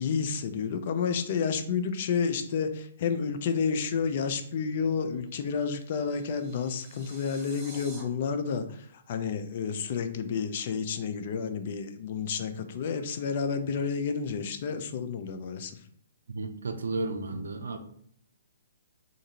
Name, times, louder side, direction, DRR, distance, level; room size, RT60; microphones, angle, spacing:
voice 1, 0.0-15.7, left 6 dB, 50° left, 8 dB, 0.4 m, -30 dB
sound 1, 5.5-8.0, right 1 dB, 10° right, 0.9 m, -50 dB
voice 2, 16.3-17.8, right 3 dB, 80° right, 8 dB, 0.4 m, -33 dB
2.6 x 2.4 x 2.8 m, 0.64 s
hypercardioid pair, 140°, 0 cm